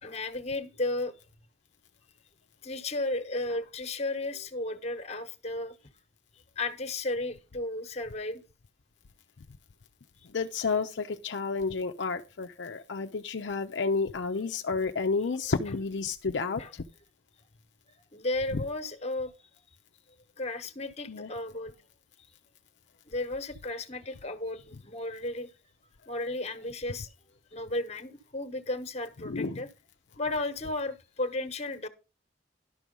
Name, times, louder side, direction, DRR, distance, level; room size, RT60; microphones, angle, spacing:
voice 1, 0.0-1.1 2.6-5.7 6.6-8.4 16.6-16.7 18.1-19.5 20.4-21.7 23.1-25.5 26.1-27.1 27.5-29.7 30.2-31.9, left 2 dB, 35° left, 1.1 m, -34 dB
voice 2, 10.3-16.8 21.1-21.3 29.2-29.6, left 4 dB, 65° left, 0.6 m, -31 dB
12.0 x 6.1 x 5.3 m
head